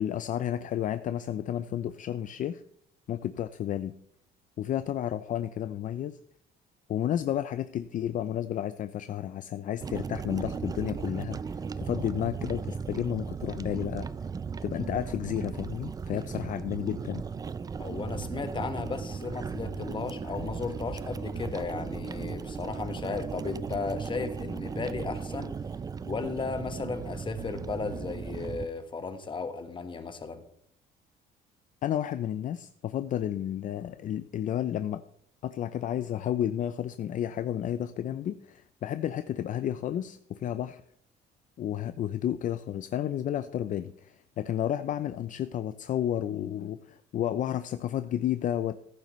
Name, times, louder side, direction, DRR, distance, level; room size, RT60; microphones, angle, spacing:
voice 1, 0.0-2.6 3.1-3.9 4.6-6.2 6.9-14.1 14.6-17.3 31.8-35.0 35.4-40.8 41.6-48.8, left 10 dB, 50° left, 12 dB, 0.5 m, -31 dB
sound 1, 9.8-28.7, right 5 dB, 20° right, 0.4 m, -36 dB
voice 2, 17.8-25.6 26.0-30.4, left 4 dB, 30° left, 9 dB, 1.3 m, -35 dB
14.5 x 10.5 x 3.1 m, 0.67 s
cardioid pair, 110°, 17 cm